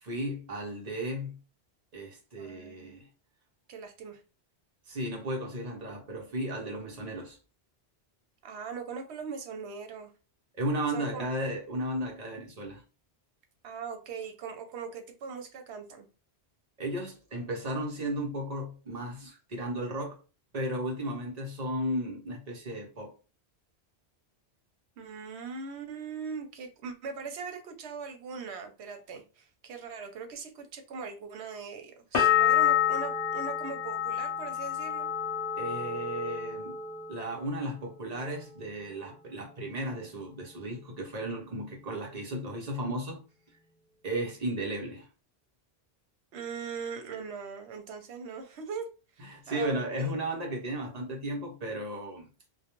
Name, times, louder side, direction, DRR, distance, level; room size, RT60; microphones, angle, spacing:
voice 1, 0.0-1.4 1.9-3.1 4.9-7.4 10.5-12.8 16.8-20.2 20.5-23.1 35.6-36.7 37.1-43.2 44.0-45.1 49.2-52.3, right 1 dB, 45° right, 0.7 m, -34 dB
voice 2, 2.4-3.0 3.7-4.2 8.4-10.1 10.9-11.3 13.6-16.1 25.0-35.1 46.3-48.9 49.1-50.1, right 5 dB, 80° right, 0.9 m, -40 dB
sound 1, 32.1-37.8 38.1-38.8, left 9 dB, 60° left, 0.8 m, -29 dB
2.2 x 2.1 x 2.9 m
omnidirectional pair, 1.1 m